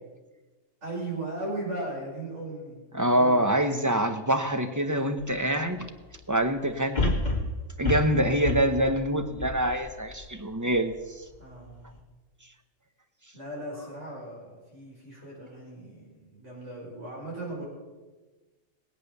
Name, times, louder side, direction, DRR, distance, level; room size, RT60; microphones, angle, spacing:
voice 1, 0.8-2.8 3.1-3.5 11.4-12.0 13.3-17.7, right 2 dB, 65° right, -4 dB, 5.9 m, -37 dB
voice 2, 2.9-5.9 6.3-7.1 7.8-10.9, right 1 dB, 15° right, 7 dB, 0.8 m, -25 dB
sound 1, 5.2-5.3 6.9-10.3 10.8-10.9, left 2 dB, 35° left, 2.2 m, -29 dB
20.5 x 8.5 x 6.7 m, 1.2 s
omnidirectional pair, 1.3 m